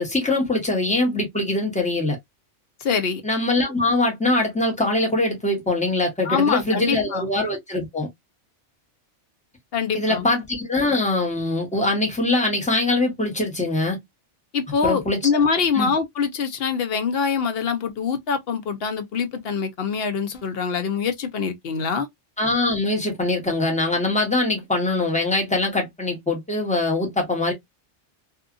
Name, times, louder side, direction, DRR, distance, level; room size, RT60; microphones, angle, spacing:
voice 1, 0.0-2.2 3.2-8.1 9.9-14.0 14.8-15.2 15.7-15.9 22.4-27.5, left 2 dB, 5° left, 1.0 m, -23 dB
voice 2, 2.8-3.2 6.2-7.3 9.7-10.3 14.5-22.1, left 6 dB, 60° left, 0.8 m, -24 dB
2.7 x 2.4 x 2.4 m
omnidirectional pair, 1.3 m